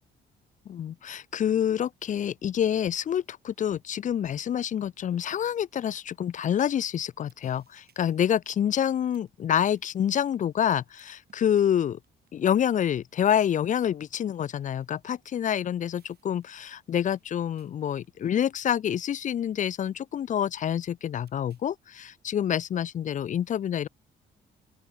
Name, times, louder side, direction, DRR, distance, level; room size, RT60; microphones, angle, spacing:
voice 1, 0.7-12.0 12.3-23.9, left 9 dB, 40° left, 0.4 m, -27 dB
sound 1, 7.2-21.7, right 8 dB, 55° right, 7.2 m, -66 dB
open air
cardioid pair, 90°, 20 cm